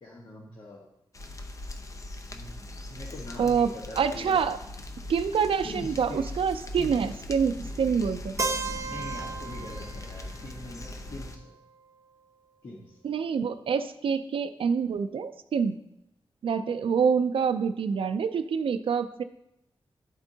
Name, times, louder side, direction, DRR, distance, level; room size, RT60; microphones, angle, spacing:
voice 1, 0.0-0.8 2.3-4.4 5.6-6.2 6.8-7.1 8.9-11.5 12.6-13.0, left 2 dB, 60° left, -3 dB, 1.3 m, -43 dB
sound 1, 1.1-11.4, left 1 dB, 35° left, 0.6 m, -40 dB
voice 2, 3.4-3.7 4.0-4.6 5.1-8.3 13.0-15.8 16.4-19.2, right 6 dB, 75° right, 11 dB, 0.4 m, -26 dB
Keyboard (musical), 8.4-12.3, right 3 dB, 35° right, 0.6 m, -36 dB
11.5 x 4.4 x 2.7 m, 0.84 s
wide cardioid pair, 120°, 9 cm